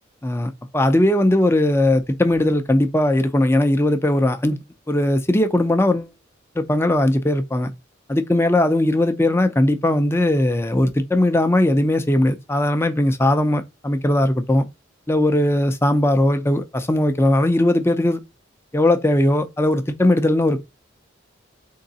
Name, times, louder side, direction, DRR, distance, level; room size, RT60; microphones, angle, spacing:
voice 1, 0.2-4.6 4.9-6.1 6.6-7.7 8.1-14.6 15.1-18.2 18.7-20.6, left 1 dB, 15° left, 0.6 m, -19 dB
3.8 x 2.9 x 4.1 m
head